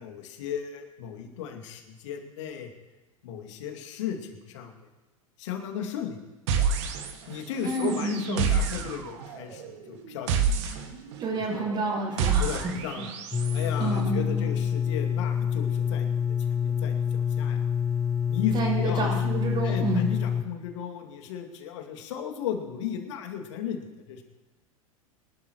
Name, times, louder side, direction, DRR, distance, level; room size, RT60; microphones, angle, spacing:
voice 1, 0.0-2.7 3.2-4.7 5.4-6.2 7.3-10.6 11.3-11.7 12.4-13.1 13.5-16.1 16.5-17.7 18.3-19.1 19.6-24.2, left 8 dB, 55° left, 4 dB, 2.4 m, -35 dB
sound 1, 6.5-7.4 7.6-13.7, right 6 dB, 55° right, 1.9 m, -29 dB
voice 2, 7.6-8.5 11.2-12.7 13.0-13.1 13.8-14.5 18.5-20.1, right 3 dB, 35° right, -8 dB, 4.8 m, -29 dB
sound 2, 13.3-20.4, left 8 dB, 15° left, 1.0 m, -27 dB
25.0 x 12.0 x 3.1 m, 1.1 s
figure-of-eight pair, 85°, 18 cm